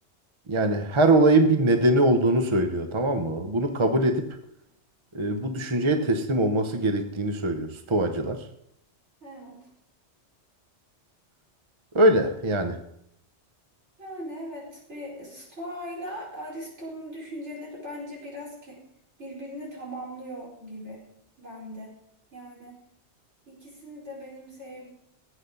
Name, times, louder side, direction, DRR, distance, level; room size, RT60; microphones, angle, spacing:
voice 1, 0.5-4.3 5.1-8.5 11.9-12.8, right 1 dB, 30° right, 7 dB, 0.9 m, -22 dB
voice 2, 9.2-9.7 14.0-18.8 19.2-21.0 21.4-21.9 22.3-22.8 23.5-24.9, equal, 80° right, -4 dB, 5.2 m, -39 dB
17.5 x 8.3 x 4.0 m, 0.76 s
omnidirectional pair, 1.2 m